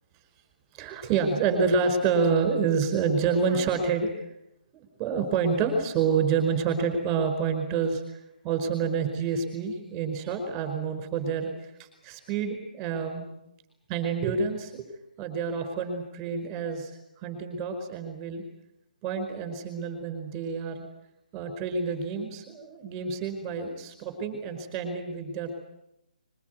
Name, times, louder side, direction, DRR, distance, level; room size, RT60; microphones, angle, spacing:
voice 1, 0.7-4.2 4.7-8.2 8.4-13.3 13.9-14.8 15.2-16.9 17.2-18.4 19.0-20.9 21.3-25.5, right 5 dB, 15° right, 7 dB, 5.0 m, -28 dB
22.5 x 21.5 x 9.5 m, 0.82 s
hypercardioid pair, 165°, 5 cm